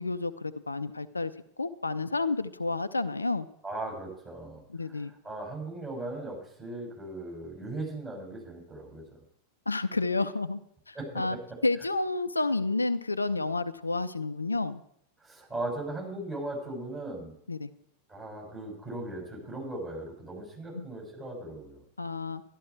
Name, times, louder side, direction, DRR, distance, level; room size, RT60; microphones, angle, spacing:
voice 1, 0.0-1.3 1.6-3.5 4.7-5.1 9.7-10.6 10.9-11.4 11.6-14.8 17.5-17.7 20.7-20.9 22.0-22.4, left 3 dB, 80° left, 12 dB, 0.5 m, -30 dB
voice 2, 3.6-9.0 10.9-11.4 15.2-17.3 18.1-21.8, right 2 dB, 20° right, -2 dB, 6.3 m, -38 dB
12.5 x 12.0 x 4.7 m, 0.68 s
figure-of-eight pair, 90°, 0 cm